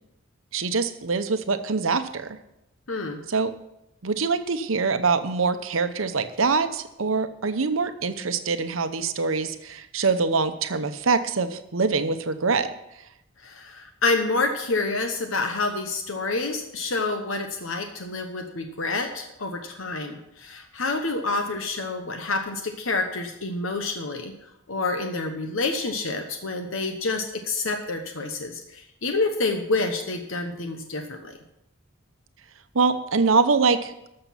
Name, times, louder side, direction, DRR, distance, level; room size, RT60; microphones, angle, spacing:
voice 1, 0.5-2.4 3.3-3.5 4.0-12.7 32.7-34.1, right 4 dB, 75° right, 9 dB, 0.9 m, -24 dB
voice 2, 2.9-3.2 13.4-24.3 24.7-31.4, left 3 dB, 70° left, 5 dB, 1.0 m, -28 dB
13.0 x 6.7 x 5.7 m, 0.84 s
head